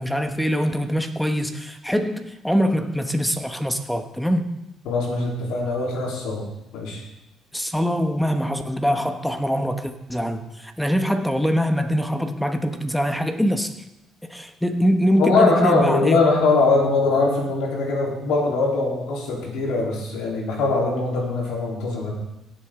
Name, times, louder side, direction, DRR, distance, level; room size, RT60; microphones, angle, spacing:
voice 1, 0.0-4.5 7.5-13.8 14.2-16.2, equal, 5° left, 7 dB, 1.2 m, -23 dB
voice 2, 4.9-6.5 6.7-7.0 15.2-22.1, left 3 dB, 85° left, -3 dB, 3.6 m, -21 dB
17.0 x 7.7 x 3.8 m, 0.91 s
supercardioid pair, 80°, 0 cm